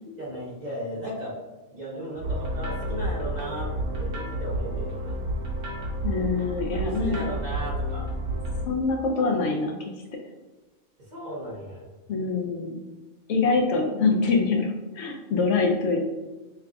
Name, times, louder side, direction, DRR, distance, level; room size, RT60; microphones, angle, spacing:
voice 1, 0.1-1.4 1.7-3.7 4.0-5.2 6.7-8.1 11.0-11.8, right 1 dB, 40° right, -6 dB, 1.0 m, -35 dB
sound 1, 2.2-8.6, right 1 dB, 75° right, 1.2 m, -30 dB
voice 2, 6.0-7.2 8.7-9.8 12.1-12.8 13.3-16.0, left 4 dB, 75° left, 1 dB, 0.9 m, -24 dB
5.7 x 2.4 x 2.3 m, 1.1 s
omnidirectional pair, 1.3 m